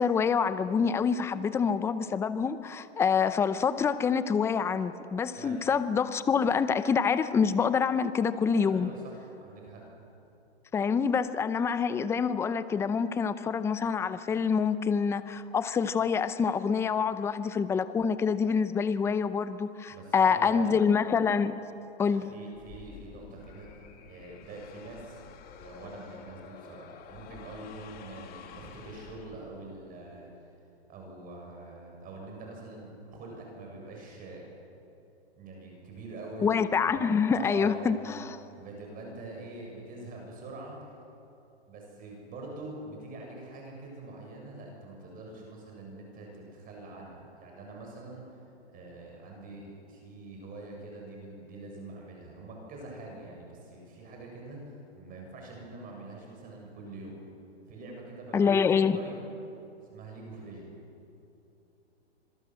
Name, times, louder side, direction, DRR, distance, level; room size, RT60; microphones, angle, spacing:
voice 1, 0.0-8.9 10.7-21.5 22.0-22.3 36.4-38.4 58.3-59.0, left 6 dB, 10° left, 14 dB, 0.6 m, -26 dB
voice 2, 8.6-9.8 19.9-20.8 22.1-23.7 24.1-25.2 25.6-30.3 30.9-34.5 35.4-36.5 36.9-38.2 38.6-40.9 41.7-48.2 48.7-57.1 57.7-59.3 59.9-60.7, right 2 dB, 25° right, 0 dB, 7.2 m, -44 dB
sound 1, 22.5-29.8, left 7 dB, 25° left, 2.3 m, -50 dB
26.5 x 22.5 x 7.8 m, 2.9 s
hypercardioid pair, 135°, 33 cm